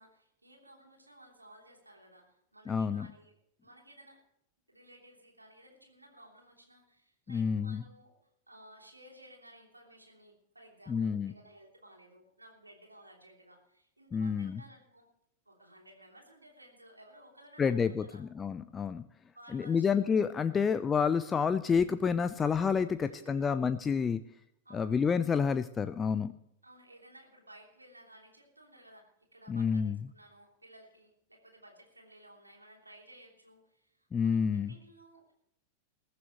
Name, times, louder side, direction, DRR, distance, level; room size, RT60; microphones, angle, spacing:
voice 1, 0.0-3.3 3.6-4.2 4.7-8.1 8.5-15.1 15.4-18.2 19.3-19.9 20.5-20.7 22.9-23.5 24.6-25.0 26.6-35.3, right 1 dB, 85° right, 0 dB, 3.1 m, -57 dB
voice 2, 2.7-3.1 7.3-7.8 10.9-11.3 14.1-14.6 17.6-19.0 19.5-24.2 24.7-26.3 29.5-30.0 34.1-34.7, left 6 dB, 20° left, 12 dB, 0.5 m, -29 dB
21.0 x 14.5 x 3.1 m, 0.72 s
figure-of-eight pair, 90°, 0 cm